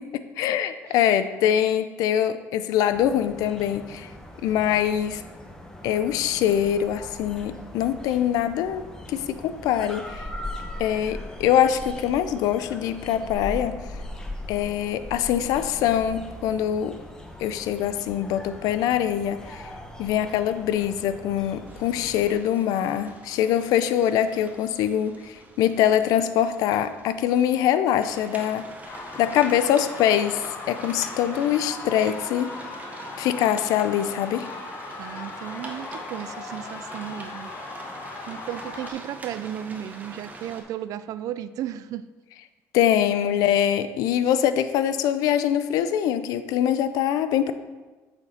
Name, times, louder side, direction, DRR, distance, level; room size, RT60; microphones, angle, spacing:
voice 1, 0.4-4.1 4.4-5.2 5.8-8.8 9.1-10.2 10.8-13.8 14.5-17.0 17.4-19.7 20.0-28.6 29.2-32.5 33.2-34.5 42.7-47.5, left 10 dB, 80° left, 11 dB, 0.4 m, -23 dB
sound 1, 2.9-22.4, left 1 dB, 10° left, 0.9 m, -40 dB
sound 2, 21.7-27.6 28.0-40.6, right 2 dB, 25° right, 1.0 m, -43 dB
sound 3, 28.8-38.9, left 4 dB, 45° left, 0.9 m, -39 dB
voice 2, 35.0-37.5 38.3-42.1, right 11 dB, 70° right, 14 dB, 0.3 m, -34 dB
7.8 x 4.3 x 4.2 m, 1.3 s
cardioid pair, 95°, 6 cm